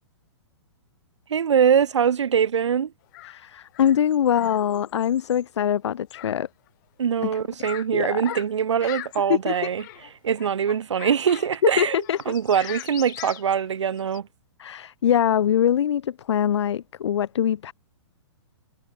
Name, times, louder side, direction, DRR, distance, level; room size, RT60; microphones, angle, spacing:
voice 1, 1.3-2.9 7.0-9.8 10.2-12.0 12.3-14.3, right 7 dB, 85° right, 1.4 m, -23 dB
sound 1, 3.1-3.4 3.7-5.4 6.1-6.4 6.7-6.8 7.3-7.9 8.2-8.5 8.8-10.1 10.4-11.7 12.0-14.2, left 19 dB, 40° left, 1.3 m, -40 dB
voice 2, 3.3-6.5 7.9-8.4 8.8-9.0 9.3-9.5 11.8-12.8 14.6-17.7, left 9 dB, 75° left, 0.7 m, -23 dB
hypercardioid pair, 145°, 15 cm